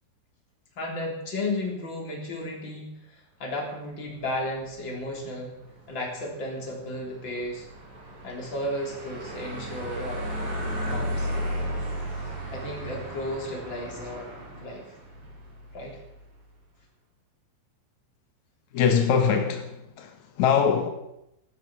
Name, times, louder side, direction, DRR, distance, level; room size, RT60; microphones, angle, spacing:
voice 1, 0.8-5.5 5.9-7.7 8.2-10.2 10.8-11.3 12.5-14.3 14.6-14.8 15.7-16.0, left 1 dB, 25° left, 3.8 m, -34 dB
sound 1, 4.1-16.2, equal, 50° right, 6.5 m, -35 dB
voice 2, 18.7-20.9, left 7 dB, 85° left, 1.6 m, -23 dB
15.5 x 12.5 x 6.2 m
omnidirectional pair, 5.4 m